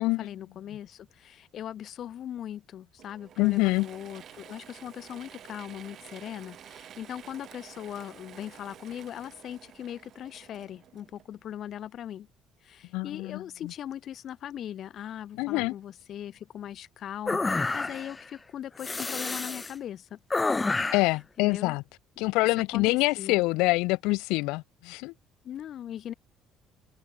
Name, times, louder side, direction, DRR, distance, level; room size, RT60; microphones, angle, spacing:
voice 1, 0.0-12.3 12.6-20.2 20.9-21.8 22.2-22.3 22.7-23.4 25.4-26.1, left 10 dB, 55° left, 1.6 m, -40 dB
Mechanisms / Drill, 3.0-11.6, right 10 dB, 50° right, 3.5 m, -50 dB
voice 2, 3.4-3.9 12.9-13.4 15.4-15.7 20.9-21.8 22.2-25.1, left 23 dB, 90° left, 0.4 m, -25 dB
sound 1, 17.3-18.2 18.8-19.7 20.3-21.1, left 3 dB, 15° left, 0.7 m, -29 dB
cardioid pair, 115°, 0 cm